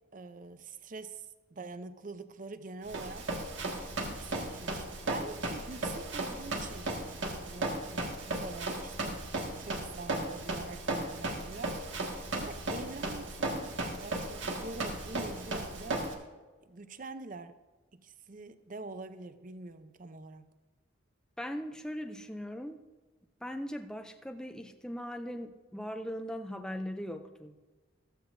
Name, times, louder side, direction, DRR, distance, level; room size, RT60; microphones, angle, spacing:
voice 1, 0.1-1.3 1.5-3.3 4.0-6.9 7.4-9.3 9.6-11.8 12.3-16.1 16.7-17.6 17.9-20.5, right 3 dB, 45° right, 11 dB, 0.7 m, -45 dB
Run, 2.9-16.1, right 2 dB, 70° right, 1.8 m, -36 dB
voice 2, 21.4-22.8 23.4-27.6, equal, 5° left, 6 dB, 0.5 m, -39 dB
15.0 x 14.5 x 2.7 m, 1.3 s
head